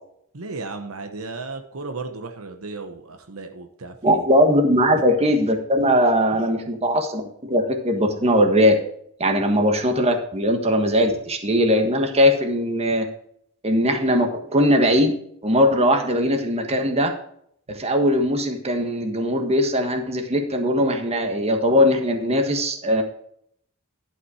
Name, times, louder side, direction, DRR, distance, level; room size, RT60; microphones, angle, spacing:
voice 1, 0.3-4.3 4.8-5.0 6.3-6.8 9.4-9.5, right 3 dB, 70° right, 5 dB, 1.0 m, -35 dB
voice 2, 4.0-8.8 9.2-13.1 13.6-15.1 15.4-17.1 17.7-23.0, equal, 30° right, 5 dB, 1.5 m, -20 dB
11.5 x 5.9 x 4.9 m, 0.67 s
head